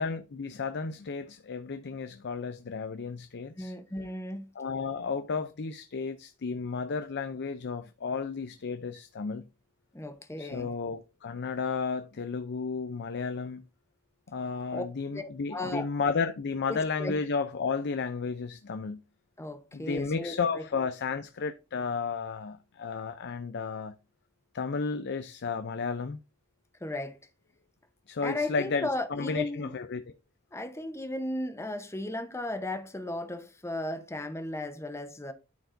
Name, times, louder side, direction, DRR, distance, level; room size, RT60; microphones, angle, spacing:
voice 1, 0.0-3.7 4.6-9.5 10.4-13.6 14.3-19.0 19.7-23.9 24.5-26.2 28.1-30.0, left 5 dB, 50° left, 0.5 m, -33 dB
voice 2, 3.6-4.4 9.9-10.7 14.7-14.8 15.1-15.9 16.7-17.1 19.4-20.6 26.8-27.2 28.2-29.7 30.5-35.3, left 1 dB, 10° left, 0.8 m, -35 dB
12.5 x 4.6 x 2.6 m
head